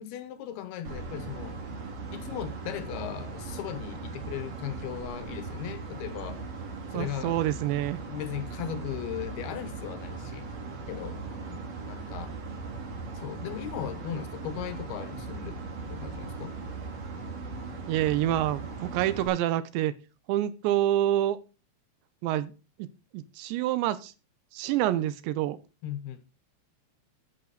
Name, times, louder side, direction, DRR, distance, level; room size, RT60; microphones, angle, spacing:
voice 1, 0.0-1.6 2.1-6.4 6.9-7.4 8.1-10.5 10.9-12.4 13.1-16.6 25.8-26.2, left 10 dB, 75° left, 2.6 m, -38 dB
sound 1, 0.8-19.3, right 4 dB, 50° right, 2.2 m, -39 dB
voice 2, 6.9-8.0 17.9-19.9 20.3-21.4 22.2-22.5 22.8-22.9 23.1-24.1 24.5-25.6, right 13 dB, 80° right, 3.0 m, -27 dB
11.0 x 9.1 x 4.0 m
omnidirectional pair, 5.2 m